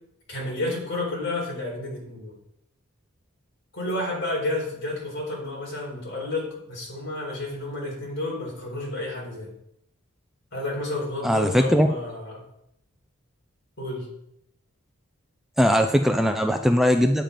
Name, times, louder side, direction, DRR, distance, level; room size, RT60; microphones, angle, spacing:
voice 1, 0.3-2.4 3.7-9.5 10.5-12.5 13.8-14.1, left 2 dB, 55° left, -3 dB, 4.2 m, -31 dB
voice 2, 11.2-11.9 15.6-17.2, equal, ahead, 5 dB, 0.4 m, -20 dB
9.1 x 7.3 x 5.1 m, 0.77 s
head